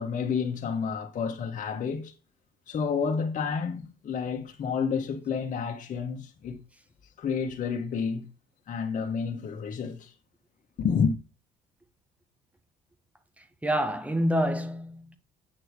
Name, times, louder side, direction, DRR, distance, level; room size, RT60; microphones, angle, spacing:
voice 1, 0.0-2.1 2.7-6.6 7.2-8.3 8.7-10.1 10.8-11.1, left 6 dB, 50° left, 2.0 m, -30 dB
voice 2, 13.4-15.2, equal, 10° right, 1.6 m, -28 dB
9.1 x 6.3 x 4.9 m
cardioid pair, 110°, 17 cm